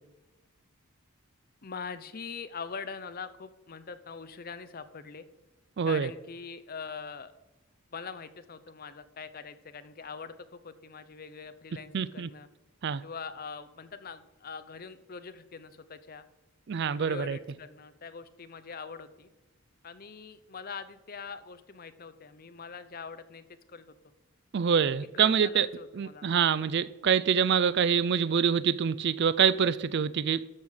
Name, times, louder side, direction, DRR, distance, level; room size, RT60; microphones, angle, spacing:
voice 1, 1.6-5.3 5.8-7.3 7.9-12.5 13.0-16.3 16.9-19.3 19.8-24.0 24.9-26.3, left 5 dB, 40° left, 0.7 m, -43 dB
voice 2, 5.8-6.1 11.9-12.3 12.8-13.0 16.7-17.4 24.5-25.7 26.0-30.4, right 7 dB, 50° right, 0.4 m, -25 dB
13.0 x 5.6 x 6.5 m
head